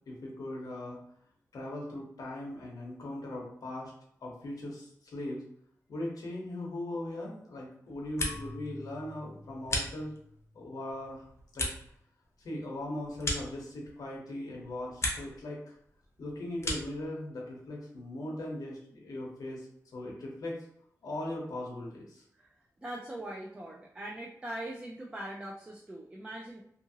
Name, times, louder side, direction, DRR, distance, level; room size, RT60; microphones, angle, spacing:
voice 1, 0.1-1.0 1.5-3.9 4.2-5.4 5.9-10.1 10.5-11.3 11.5-11.7 12.4-15.7 16.2-19.7 19.9-20.7 21.0-22.2, left 1 dB, 85° left, -3 dB, 0.7 m, -39 dB
sound 1, 7.9-8.7 9.0-10.4 10.9-14.1 14.5-15.4 15.7-17.1, left 1 dB, 45° left, 0.6 m, -37 dB
Marimba xylophone / Wood, 8.2-11.0, left 2 dB, 35° right, 1.1 m, -49 dB
voice 2, 22.8-26.6, right 1 dB, 15° right, -2 dB, 0.3 m, -41 dB
2.7 x 2.5 x 2.7 m, 0.68 s
wide cardioid pair, 180°, 6 cm